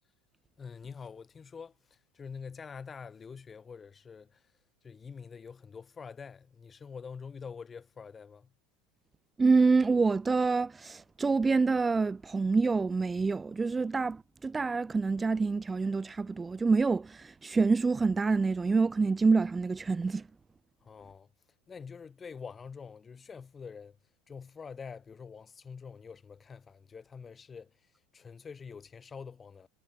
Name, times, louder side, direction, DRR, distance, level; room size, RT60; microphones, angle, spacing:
voice 1, 0.6-1.7 2.1-4.4 4.8-8.5 20.8-21.3 21.7-24.0 24.3-27.7 28.1-29.7, left 6 dB, 25° left, 7.6 m, -46 dB
voice 2, 9.4-20.3, right 4 dB, 15° right, 0.5 m, -27 dB
figure-of-eight pair, 80°, 0 cm